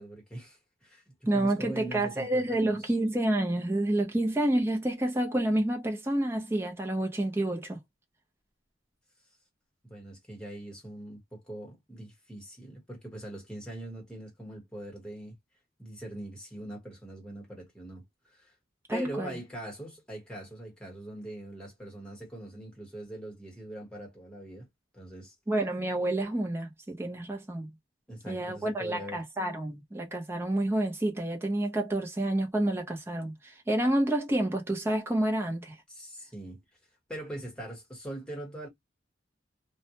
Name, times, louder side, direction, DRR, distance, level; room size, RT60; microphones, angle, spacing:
voice 1, 0.0-2.8 9.8-15.3 15.8-18.0 18.3-18.5 18.9-24.7 24.9-25.3 28.1-29.2 35.9-36.6 37.1-38.7, right 1 dB, 5° left, 1.0 m, -42 dB
voice 2, 1.3-7.8 18.9-19.4 25.5-27.7 28.3-35.8, right 1 dB, 15° right, 0.5 m, -29 dB
2.1 x 2.1 x 2.8 m
head